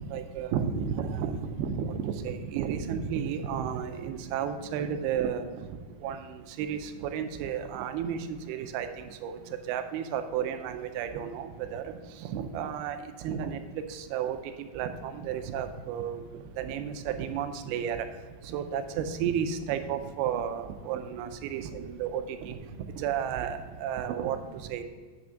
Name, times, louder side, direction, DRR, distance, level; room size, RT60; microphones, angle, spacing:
voice 1, 0.0-5.5 6.0-9.4 9.7-13.6 13.9-14.4 14.7-16.2 16.6-18.1 18.4-22.6 23.0-24.8, right 8 dB, 85° right, 8 dB, 2.6 m, -32 dB
9.3 x 3.4 x 6.3 m, 1.5 s
omnidirectional pair, 4.4 m